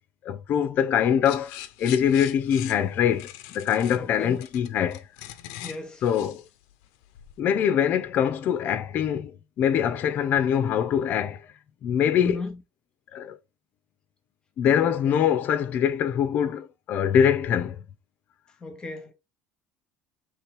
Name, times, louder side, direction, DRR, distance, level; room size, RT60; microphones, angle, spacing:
voice 1, 0.2-5.0 6.0-6.4 7.4-11.4 11.8-12.4 13.1-13.4 14.6-17.8, left 8 dB, 45° left, 0.6 m, -23 dB
sound 1, 1.2-7.4, left 13 dB, 85° left, 0.6 m, -42 dB
voice 2, 4.0-4.4 5.6-6.0 12.2-12.6 18.6-19.1, left 3 dB, 20° left, 1.1 m, -34 dB
4.6 x 3.3 x 3.3 m
cardioid pair, 135°, 4 cm